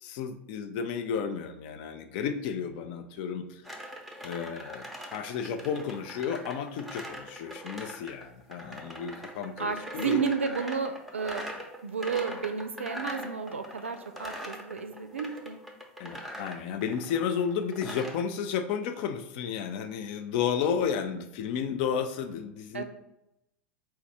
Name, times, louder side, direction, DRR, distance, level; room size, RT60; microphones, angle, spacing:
voice 1, 0.0-3.6 4.2-10.2 16.0-22.8, left 7 dB, 50° left, 8 dB, 0.4 m, -32 dB
sound 1, 3.6-18.2, equal, ahead, 0.6 m, -42 dB
voice 2, 9.6-15.6 22.7-22.8, right 6 dB, 75° right, 8 dB, 0.4 m, -32 dB
4.4 x 2.3 x 4.0 m, 0.87 s
figure-of-eight pair, 85°, 7 cm